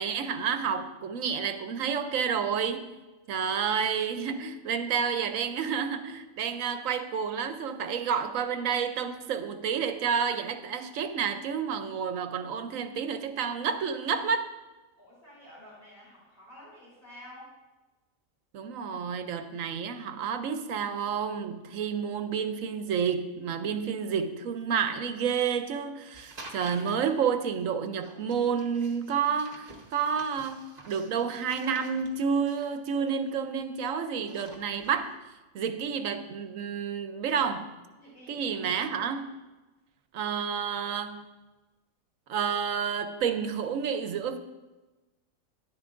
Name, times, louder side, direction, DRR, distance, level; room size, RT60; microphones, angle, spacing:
voice 1, 0.0-2.9 3.3-14.4 18.5-35.1 35.5-37.7 38.3-39.3 40.1-41.2 42.3-44.4, right 7 dB, 80° right, 9 dB, 1.1 m, -30 dB
voice 2, 14.9-17.5 37.9-38.6, left 1 dB, 40° left, -8 dB, 3.9 m, -50 dB
sound 1, 26.1-27.1 28.0-33.8 34.1-35.1, right 2 dB, 30° right, 1.2 m, -50 dB
12.0 x 10.5 x 2.5 m, 1.1 s
omnidirectional pair, 1.4 m